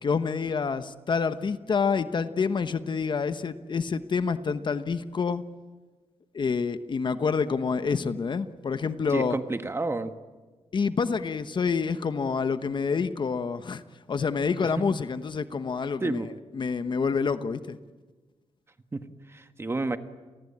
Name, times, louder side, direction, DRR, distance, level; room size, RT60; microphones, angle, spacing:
voice 1, 0.0-5.4 6.3-9.4 10.7-13.8 14.1-16.2 16.5-17.8, left 5 dB, 45° left, 11 dB, 1.1 m, -27 dB
voice 2, 9.1-10.1 16.0-16.3 18.9-19.0 19.3-20.0, right 2 dB, 25° right, 9 dB, 1.4 m, -30 dB
29.5 x 20.0 x 8.7 m, 1.3 s
wide cardioid pair, 135°, 11 cm